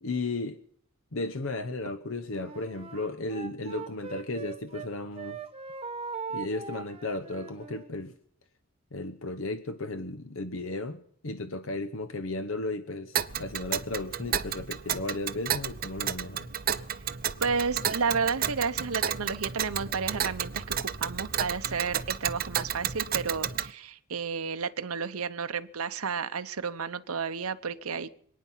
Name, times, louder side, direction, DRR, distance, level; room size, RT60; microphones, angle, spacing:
voice 1, 0.0-0.6 1.1-5.4 6.3-8.2 8.9-16.5, left 2 dB, 70° left, 10 dB, 0.9 m, -35 dB
Wind instrument woodwind instrument, 2.3-4.9 5.1-7.9, right 5 dB, 25° right, 1.1 m, -40 dB
Tick, 13.1-23.7, right 9 dB, 40° right, 0.7 m, -32 dB
voice 2, 17.4-28.2, right 5 dB, 90° right, 10 dB, 0.9 m, -32 dB
26.5 x 9.6 x 5.7 m, 0.64 s
head